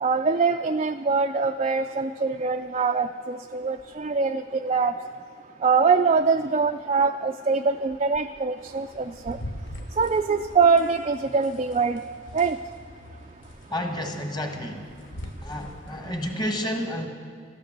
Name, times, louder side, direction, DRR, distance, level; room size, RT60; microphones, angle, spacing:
voice 1, 0.0-4.9 5.6-9.4 10.0-12.0 12.3-12.6, right 4 dB, 30° right, 5 dB, 0.3 m, -23 dB
sound 1, 8.6-16.3, equal, 70° left, 1.1 m, -42 dB
voice 2, 13.7-14.9 15.4-17.1, equal, 20° left, 4 dB, 1.4 m, -30 dB
14.0 x 11.5 x 7.3 m, 2.2 s
head